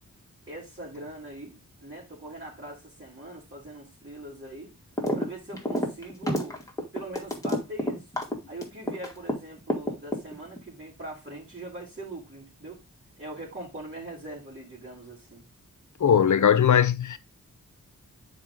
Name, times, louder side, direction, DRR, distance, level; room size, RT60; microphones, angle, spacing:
voice 1, 0.5-4.7 5.2-6.6 6.9-8.1 8.5-12.8 13.2-15.4, right 2 dB, 30° right, 3.8 m, -41 dB
sound 1, 5.0-5.3 5.5-9.4 9.7-10.6, left 1 dB, 10° left, 2.1 m, -28 dB
voice 2, 16.0-17.2, left 8 dB, 60° left, 0.7 m, -20 dB
9.0 x 4.8 x 3.8 m
wide cardioid pair, 115°, 34 cm